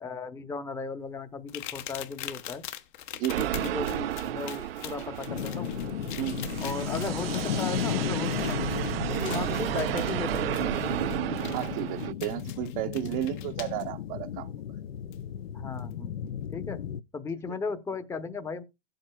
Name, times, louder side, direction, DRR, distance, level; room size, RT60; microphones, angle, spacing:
voice 1, 0.0-2.6 3.4-5.8 6.6-8.6 9.1-10.9 15.5-16.8 17.1-18.6, left 4 dB, 10° left, 0.8 m, -36 dB
sound 1, 1.5-13.8 15.1-15.2 15.8-15.9, left 12 dB, 55° left, 1.0 m, -44 dB
voice 2, 3.1-3.6 6.2-6.6 11.5-14.5 17.5-17.6, right 14 dB, 40° right, 0.7 m, -33 dB
sound 2, 3.3-12.1, right 12 dB, 80° right, 0.5 m, -32 dB
sound 3, 5.3-17.0, left 10 dB, 85° left, 0.6 m, -35 dB
16.0 x 7.8 x 2.2 m
hypercardioid pair, 130°, 29 cm